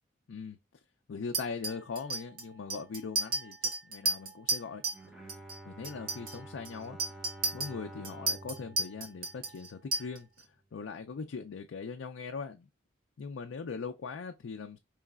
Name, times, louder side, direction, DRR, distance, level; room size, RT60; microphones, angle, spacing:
voice 1, 1.1-4.9 5.3-5.4 5.6-7.2 7.5-12.7 13.2-14.8, left 5 dB, 85° left, 0.4 m, -41 dB
Chink clink, 1.3-5.0 5.3-5.6 5.8-10.4, right 2 dB, 45° right, 1.4 m, -34 dB
Bowed string instrument, 4.8-10.2, right 2 dB, ahead, 0.7 m, -49 dB
4.8 x 3.1 x 2.3 m
head